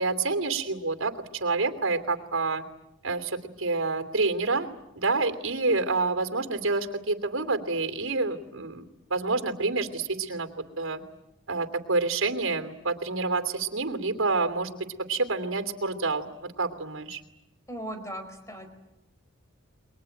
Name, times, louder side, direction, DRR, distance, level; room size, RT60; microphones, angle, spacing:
voice 1, 0.0-2.6 3.0-4.7 5.0-10.5 10.8-11.0 11.5-14.8 15.1-17.2, right 3 dB, 80° right, 7 dB, 2.8 m, -28 dB
voice 2, 17.7-18.7, right 1 dB, 15° left, 6 dB, 4.6 m, -37 dB
29.0 x 22.5 x 9.1 m, 0.93 s
head